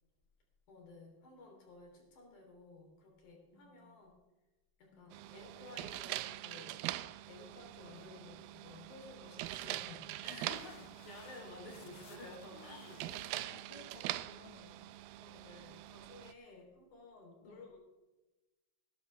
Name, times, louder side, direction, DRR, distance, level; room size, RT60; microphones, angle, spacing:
voice 1, 0.7-4.1 4.8-6.7 7.3-10.6 11.0-13.6 15.2-17.8, left 3 dB, 55° left, 0 dB, 4.8 m, -54 dB
voice 2, 3.5-3.9 4.9-5.0 10.3-10.8 11.6-11.8 12.5-14.8 17.4-17.7, left 3 dB, 25° left, 1 dB, 1.2 m, -56 dB
sound 1, 5.1-16.3, right 15 dB, 80° right, 2.3 m, -44 dB
sound 2, 9.6-14.7, left 13 dB, 85° left, 2.4 m, -61 dB
19.0 x 11.5 x 3.4 m, 1.1 s
omnidirectional pair, 4.3 m